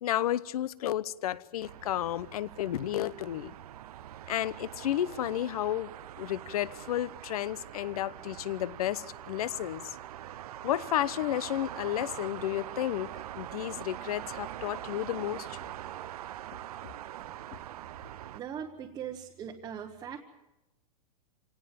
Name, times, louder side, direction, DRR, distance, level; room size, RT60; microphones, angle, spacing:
voice 1, 0.0-3.5 4.3-5.9 6.2-10.0 10.6-13.1 13.4-15.6, left 12 dB, 70° left, 19 dB, 0.9 m, -32 dB
sound 1, 1.6-18.4, right 12 dB, 75° right, 0.8 m, -43 dB
voice 2, 18.3-20.2, right 8 dB, 15° right, 0 dB, 1.2 m, -40 dB
26.5 x 18.0 x 7.6 m, 0.95 s
supercardioid pair, 175°, 20 cm